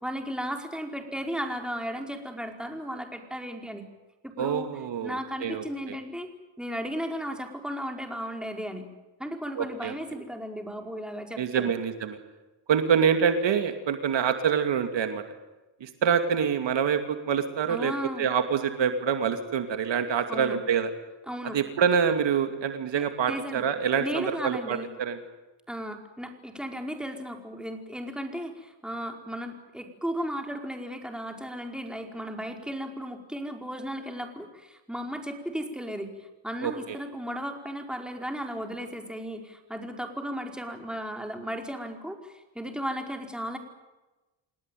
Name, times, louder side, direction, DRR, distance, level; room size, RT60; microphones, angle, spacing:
voice 1, 0.0-3.9 4.2-8.9 9.2-11.7 17.7-18.3 20.3-20.6 21.3-21.6 22.9-23.7 24.0-24.9 25.7-43.6, equal, ahead, 3 dB, 4.9 m, -35 dB
voice 2, 4.4-6.0 9.6-9.9 11.4-12.2 12.7-15.2 15.8-17.9 18.2-20.9 21.5-25.2 36.6-36.7, right 7 dB, 65° right, 7 dB, 2.7 m, -26 dB
28.5 x 18.5 x 9.3 m, 1.1 s
cardioid pair, 85°, 47 cm